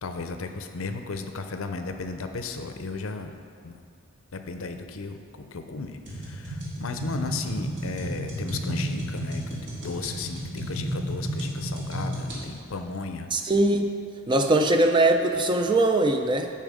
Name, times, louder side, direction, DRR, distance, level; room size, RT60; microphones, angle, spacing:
voice 1, 0.0-3.3 3.6-3.8 4.3-13.3, left 4 dB, 75° left, 7 dB, 0.6 m, -35 dB
sound 1, 6.1-12.4, right 1 dB, 55° right, 2.1 m, -32 dB
voice 2, 13.3-13.9 14.3-16.5, right 2 dB, 20° right, 5 dB, 0.4 m, -21 dB
11.0 x 4.4 x 5.0 m, 2.3 s
head